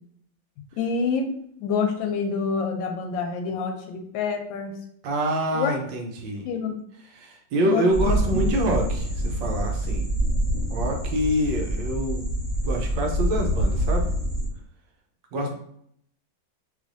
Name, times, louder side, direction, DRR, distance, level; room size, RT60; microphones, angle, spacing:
voice 1, 0.8-1.3 1.6-4.7 5.5-5.7 6.4-6.8 7.6-8.1, left 5 dB, 75° left, 4 dB, 1.2 m, -27 dB
voice 2, 5.0-6.5 7.0-10.1 10.7-12.3 12.6-14.1 15.3-15.5, equal, 75° right, 2 dB, 1.2 m, -26 dB
sound 1, 7.9-14.5, right 1 dB, 25° left, 1.5 m, -26 dB
3.2 x 3.1 x 2.5 m, 0.67 s
omnidirectional pair, 2.1 m